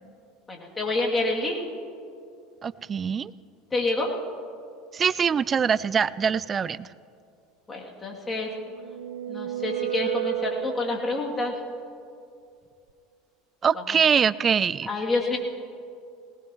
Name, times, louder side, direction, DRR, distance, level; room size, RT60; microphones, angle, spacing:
voice 1, 0.5-1.7 3.7-4.1 7.7-8.5 9.3-11.6 14.9-15.4, left 2 dB, 20° left, -1 dB, 2.7 m, -27 dB
voice 2, 2.6-3.3 4.9-6.9 13.6-14.9, right 7 dB, 30° right, 19 dB, 0.3 m, -23 dB
sound 1, 8.4-11.5, right 13 dB, 75° right, 0.8 m, -33 dB
19.5 x 18.5 x 3.1 m, 2.4 s
hypercardioid pair, 75°, 0 cm